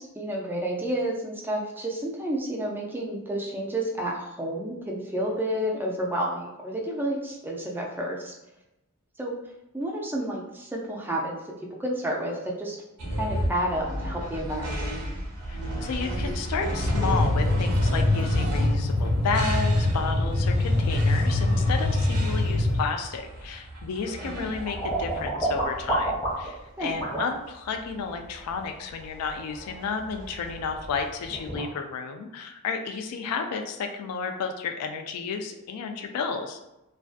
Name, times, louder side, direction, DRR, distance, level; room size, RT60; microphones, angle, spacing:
voice 1, 0.0-8.3 9.2-9.3 9.7-11.5 11.8-12.8 13.2-14.9 24.2-24.4 26.8-26.9, right 1 dB, 10° right, -2 dB, 0.3 m, -30 dB
sound 1, 13.0-31.5, right 1 dB, 85° right, 0.6 m, -35 dB
voice 2, 15.5-36.7, left 5 dB, 80° left, 5 dB, 0.3 m, -32 dB
sound 2, 16.8-22.8, left 2 dB, 60° left, 0.7 m, -24 dB
sound 3, 23.9-26.6 27.0-27.3 30.8-30.9 31.2-31.7, right 2 dB, 20° left, 0.9 m, -29 dB
2.4 x 2.2 x 2.4 m, 0.93 s
head